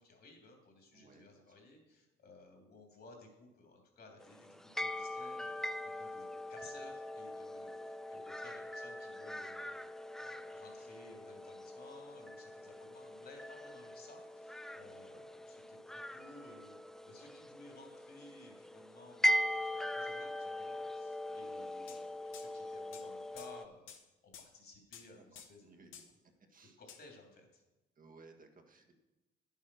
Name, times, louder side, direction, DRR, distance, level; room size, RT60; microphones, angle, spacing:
voice 1, 0.0-9.9 10.2-16.8 17.0-26.0 26.8-27.6, left 3 dB, 55° left, 2 dB, 3.0 m, -58 dB
voice 2, 0.9-1.6 7.6-7.9 14.8-15.0 21.3-21.5 25.2-26.8 27.9-28.9, right 3 dB, 45° right, 4 dB, 1.5 m, -62 dB
sound 1, 4.2-23.7, left 1 dB, ahead, 0.4 m, -40 dB
sound 2, 21.9-22.0 22.3-22.5 22.9-23.0 23.4-23.5 23.9-24.0 24.3-24.5 24.9-25.1 25.3-25.5 25.9-26.1 26.9-27.0, left 8 dB, 85° left, 1.1 m, -52 dB
9.8 x 7.3 x 6.3 m, 1.0 s
cardioid pair, 90°, 20 cm